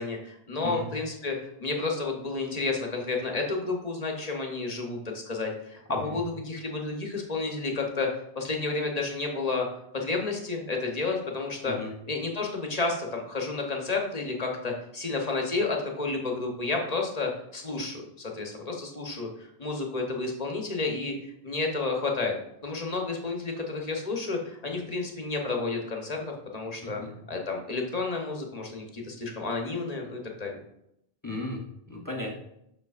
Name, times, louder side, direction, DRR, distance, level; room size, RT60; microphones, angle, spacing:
voice 1, 0.0-8.1 8.3-9.7 9.9-11.8 12.1-22.3 22.6-27.0 27.3-30.6, left 3 dB, 40° left, 1 dB, 1.0 m, -31 dB
voice 2, 5.9-6.2 11.6-11.9 26.8-27.1 31.2-31.6 31.9-32.3, left 1 dB, 20° left, -1 dB, 0.8 m, -35 dB
6.6 x 6.1 x 2.4 m, 0.78 s
omnidirectional pair, 1.0 m